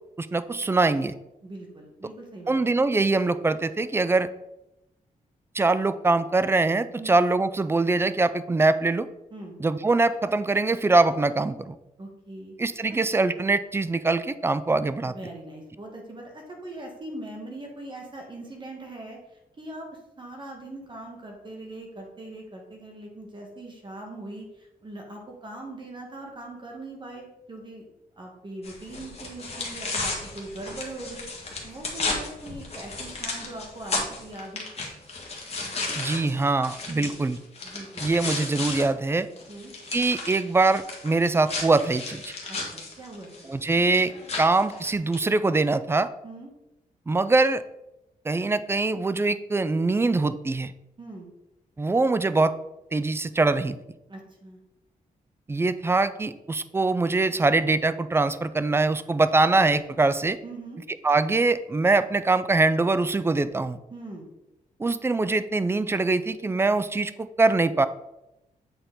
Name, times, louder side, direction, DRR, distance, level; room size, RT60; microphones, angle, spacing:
voice 1, 0.2-1.1 2.5-4.3 5.5-9.1 9.6-11.7 12.6-15.2 36.0-37.4 38.0-39.3 39.9-42.3 43.5-44.1 44.4-46.1 47.1-47.6 48.3-50.7 51.8-52.5 52.9-53.8 55.5-60.4 61.0-63.8 64.8-67.9, right 3 dB, 15° right, 13 dB, 0.3 m, -23 dB
voice 2, 1.4-2.8 7.0-7.1 9.3-9.6 12.0-12.5 12.9-13.0 15.0-27.9 28.2-34.6 36.9-37.1 37.6-38.1 39.5-39.7 42.5-43.5 46.2-46.5 51.0-51.3 54.1-54.6 60.4-60.8 63.9-64.3, right 2 dB, 30° right, 1 dB, 1.3 m, -41 dB
sound 1, 28.6-38.8 39.2-45.2, left 3 dB, 45° left, 1.6 m, -34 dB
8.0 x 4.1 x 3.8 m, 0.91 s
cardioid pair, 105°, 15 cm